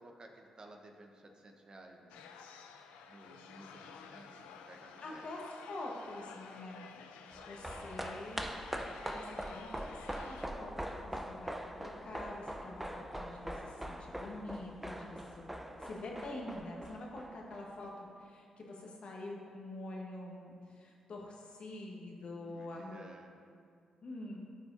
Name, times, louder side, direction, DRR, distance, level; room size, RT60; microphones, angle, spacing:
voice 1, 0.0-2.2 3.1-5.3 22.3-23.3, right 1 dB, 40° right, 3 dB, 0.9 m, -55 dB
sound 1, 2.1-10.5, left 6 dB, 85° left, 0.4 m, -53 dB
voice 2, 5.0-5.4 5.7-6.9 7.4-8.5 9.1-10.7 11.0-15.4 15.8-23.0 24.0-24.4, left 2 dB, 60° left, -1 dB, 1.2 m, -46 dB
sound 2, 7.3-17.9 18.2-18.3, equal, 10° right, 0.7 m, -43 dB
13.0 x 4.7 x 2.7 m, 2.4 s
hypercardioid pair, 45°, 2 cm